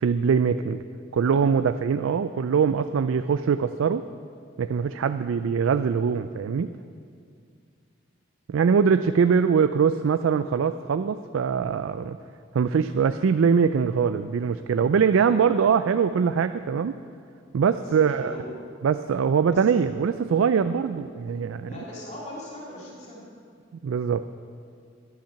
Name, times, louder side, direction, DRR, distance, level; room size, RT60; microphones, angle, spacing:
voice 1, 0.0-0.8 1.1-4.1 4.6-6.8 8.5-12.2 12.5-17.0 17.5-18.3 18.8-21.7 23.8-24.3, right 6 dB, 85° right, 10 dB, 0.3 m, -22 dB
voice 2, 17.7-18.5 19.5-19.7 21.6-23.2, left 1 dB, 35° left, -5 dB, 2.4 m, -40 dB
11.5 x 10.0 x 5.8 m, 2.3 s
head